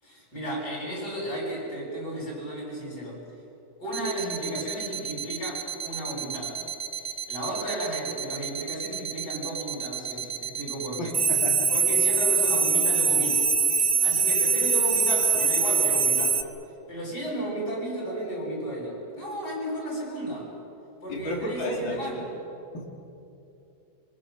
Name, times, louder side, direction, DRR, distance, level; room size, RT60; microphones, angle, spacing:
voice 1, 0.0-3.2 3.8-6.6 6.9-11.1 11.7-13.5 13.8-16.4 16.9-20.5 21.0-22.3, right 1 dB, 55° left, -3 dB, 8.5 m, -34 dB
sound 1, 3.9-16.4, right 6 dB, 40° right, 0.7 m, -25 dB
voice 2, 11.0-11.7 21.1-22.0 22.7-22.9, left 1 dB, 70° left, 0 dB, 4.1 m, -32 dB
25.5 x 24.0 x 6.7 m, 2.8 s
omnidirectional pair, 2.2 m